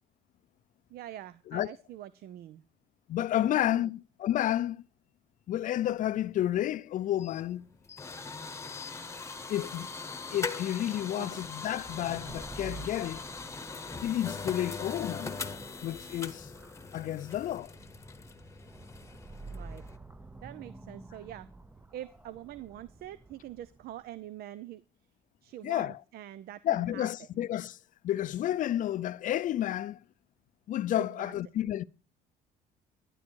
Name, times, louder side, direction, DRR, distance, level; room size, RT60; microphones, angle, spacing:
voice 1, 0.9-2.6 3.4-3.9 11.2-11.4 19.5-19.8 20.4-21.5 21.9-24.8 25.4-27.3 30.9-31.4, right 12 dB, 65° right, 0.6 m, -45 dB
voice 2, 3.1-4.8 5.5-7.7 9.5-9.9 10.3-13.2 14.0-15.4 15.8-16.5 16.9-17.7 25.6-26.0 26.6-27.8 28.0-30.0 30.7-31.8, left 12 dB, 50° left, 0.5 m, -31 dB
sound 1, 7.2-20.0, left 4 dB, 15° left, 1.0 m, -41 dB
sound 2, 11.5-24.1, right 3 dB, 10° right, 0.6 m, -49 dB
12.0 x 10.5 x 4.6 m
cardioid pair, 110°, 17 cm